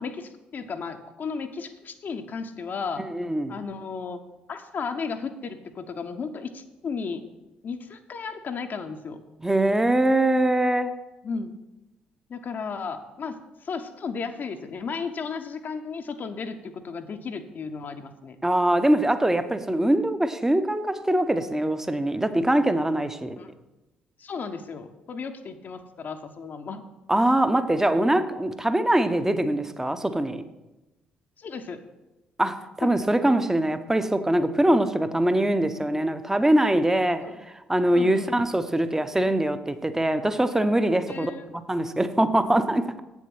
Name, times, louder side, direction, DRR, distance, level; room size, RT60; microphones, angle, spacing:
voice 1, 0.0-3.1 3.5-4.2 4.5-7.2 7.6-9.2 11.2-11.5 12.3-18.4 23.4-23.5 24.2-26.8 31.4-31.8 32.8-32.9 37.2-37.4 37.9-38.3 41.1-41.4, left 5 dB, 40° left, 6 dB, 0.8 m, -34 dB
voice 2, 3.0-3.6 9.4-10.9 18.4-23.4 27.1-30.4 32.4-37.2 37.7-43.0, right 1 dB, 10° right, 10 dB, 0.8 m, -23 dB
8.2 x 7.2 x 6.0 m, 1.0 s
figure-of-eight pair, 45°, 5 cm